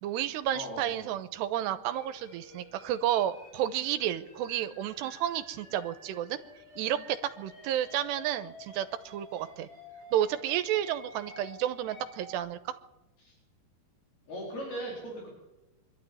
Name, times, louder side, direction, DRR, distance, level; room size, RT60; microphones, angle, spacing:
voice 1, 0.0-6.4 6.8-9.7 10.1-12.7, right 11 dB, 85° right, 11 dB, 3.0 m, -31 dB
voice 2, 0.5-1.1 13.2-13.3 14.3-15.3, equal, 60° left, -4 dB, 6.5 m, -39 dB
sound 1, 1.9-12.4, left 2 dB, 35° left, 8.1 m, -51 dB
25.0 x 12.5 x 8.6 m, 1.0 s
omnidirectional pair, 5.0 m